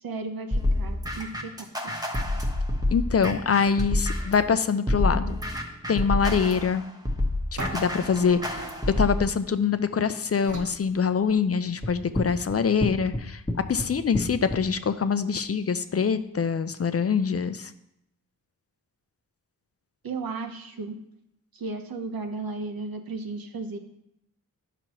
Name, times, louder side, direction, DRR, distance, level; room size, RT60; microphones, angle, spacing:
voice 1, 0.0-1.7 20.0-20.9 21.5-23.8, right 3 dB, 75° right, 5 dB, 0.9 m, -34 dB
sound 1, 0.5-4.4 4.9-9.2, left 1 dB, 10° right, 1.0 m, -28 dB
voice 2, 2.9-5.4 5.9-6.8 7.7-8.6 9.0-13.4 13.7-17.7, left 6 dB, 45° left, 11 dB, 0.4 m, -24 dB
sound 2, 7.6-9.8 10.4-11.8, right 2 dB, 55° right, 1.5 m, -40 dB
sound 3, 11.8-14.6, left 1 dB, 15° left, 1.1 m, -29 dB
10.5 x 5.9 x 3.0 m, 0.80 s
wide cardioid pair, 90°, 35 cm